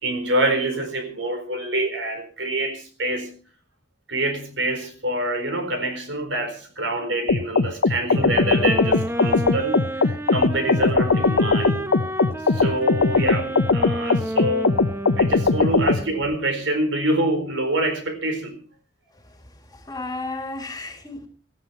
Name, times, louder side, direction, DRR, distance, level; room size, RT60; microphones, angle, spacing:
voice 1, 0.0-3.4 4.1-11.9 12.4-14.8 15.2-18.6, right 1 dB, 75° right, 7 dB, 4.3 m, -26 dB
sound 1, 7.3-16.0, left 4 dB, 80° left, 0.7 m, -20 dB
sound 2, 8.1-16.3, right 1 dB, 15° right, 1.0 m, -31 dB
voice 2, 19.1-21.3, left 2 dB, 20° left, 6 dB, 2.3 m, -34 dB
18.5 x 14.0 x 4.3 m, 0.38 s
head